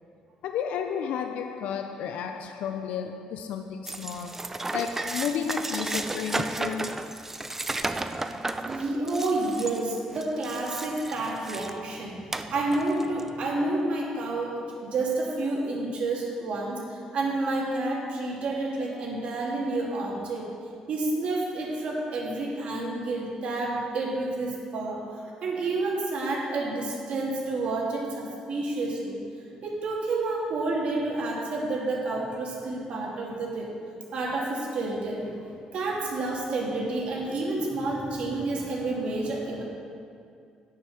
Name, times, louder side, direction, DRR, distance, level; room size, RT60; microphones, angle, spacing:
voice 1, 0.4-7.1, left 7 dB, 80° left, 0.4 m, -32 dB
sound 1, 3.9-11.8 12.3-13.3, right 2 dB, 15° right, 0.5 m, -33 dB
voice 2, 8.7-12.2 12.5-20.5 20.9-29.2 29.6-33.7 34.1-35.3 35.6-39.6, right 2 dB, 60° right, 2.3 m, -29 dB
9.4 x 6.1 x 5.8 m
cardioid pair, 95°, 2 cm